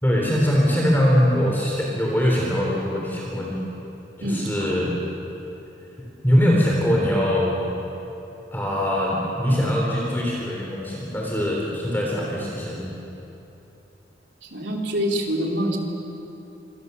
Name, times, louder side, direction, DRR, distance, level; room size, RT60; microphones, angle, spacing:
voice 1, 0.0-3.6 4.2-4.9 6.2-7.6 8.5-12.9, equal, 10° left, -3 dB, 3.6 m, -22 dB
voice 2, 4.2-4.8 14.5-15.8, equal, 60° right, 0 dB, 3.8 m, -25 dB
26.5 x 26.0 x 7.0 m, 2.9 s
head